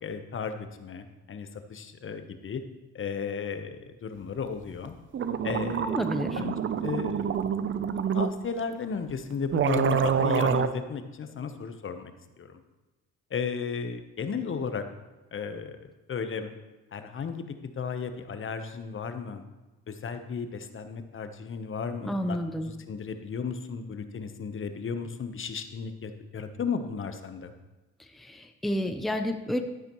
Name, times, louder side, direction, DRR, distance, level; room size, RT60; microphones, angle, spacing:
voice 1, 0.0-2.6 2.9-5.0 5.4-6.0 6.3-6.5 6.8-7.3 7.9-12.1 12.4-12.5 13.3-14.8 15.3-16.5 16.9-19.4 19.9-27.5, left 5 dB, 45° left, 8 dB, 1.0 m, -34 dB
sound 1, 4.9-5.0 5.1-8.3 9.1-9.2 9.5-10.7, right 7 dB, 45° right, 0.7 m, -27 dB
voice 2, 5.8-6.4 22.0-22.7 28.1-29.6, equal, ahead, 6 dB, 0.7 m, -30 dB
12.0 x 9.7 x 3.1 m, 1.1 s
supercardioid pair, 65°, 29 cm